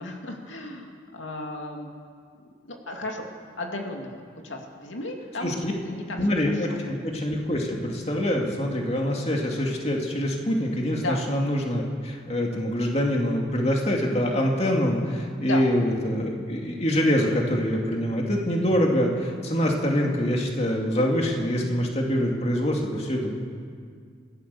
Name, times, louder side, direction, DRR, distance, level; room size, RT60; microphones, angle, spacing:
voice 1, 0.0-1.9 2.7-3.3 3.6-4.1 4.4-6.2 6.5-6.8 10.9-11.2 15.4-15.6, left 2 dB, 90° left, 2 dB, 2.6 m, -34 dB
voice 2, 5.4-5.7 6.2-23.3, equal, 35° left, 0 dB, 2.5 m, -25 dB
25.5 x 16.5 x 7.0 m, 2.1 s
head